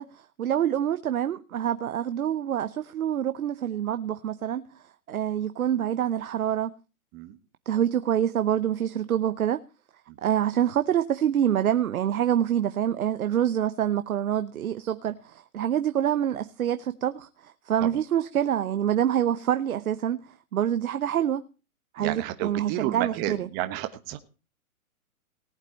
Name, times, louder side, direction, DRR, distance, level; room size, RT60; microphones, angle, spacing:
voice 1, 0.0-4.8 5.1-6.7 7.7-9.6 10.2-21.4 21.9-23.5, right 10 dB, 75° right, 1.0 m, -26 dB
voice 2, 22.0-24.2, right 14 dB, 20° right, 1.2 m, -31 dB
18.5 x 8.4 x 4.4 m
hypercardioid pair, 150°, 43 cm